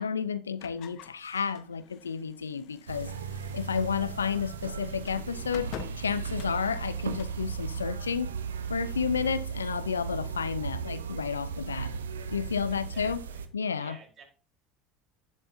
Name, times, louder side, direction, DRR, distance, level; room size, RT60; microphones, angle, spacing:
voice 1, 0.0-3.1 3.5-8.3 8.7-11.9 12.3-13.2 13.5-14.0, left 6 dB, 85° left, 0.6 m, -31 dB
sound 1, 0.6-7.4, left 10 dB, 55° left, 1.1 m, -48 dB
sound 2, 2.9-13.5, right 6 dB, 80° right, 0.9 m, -36 dB
voice 2, 12.7-13.4 13.7-14.2, right 5 dB, 40° right, 4.3 m, -51 dB
11.0 x 10.5 x 2.7 m
hypercardioid pair, 70°, 0 cm